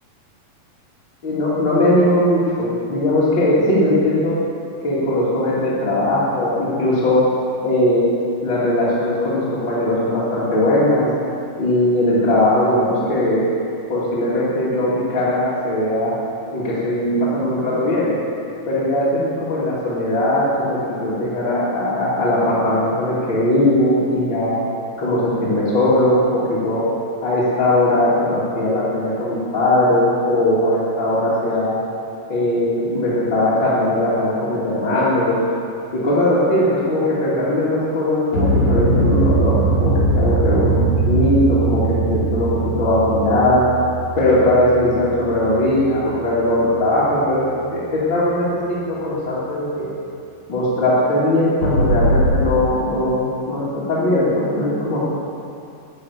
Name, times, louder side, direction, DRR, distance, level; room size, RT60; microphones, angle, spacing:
voice 1, 1.2-4.4 4.8-7.2 7.6-8.0 8.4-11.1 11.6-13.5 13.9-16.1 16.5-18.1 18.7-24.6 25.0-26.9 27.2-31.8 32.3-35.4 35.9-39.5 39.8-40.8 41.0-43.6 44.2-47.4 47.7-49.9 50.5-55.0, left 1 dB, 35° left, -11 dB, 2.4 m, -19 dB
sound 1, 38.3-46.7 51.6-52.3, right 2 dB, 65° left, 4.1 m, -21 dB
12.5 x 5.7 x 8.3 m, 2.6 s
omnidirectional pair, 4.1 m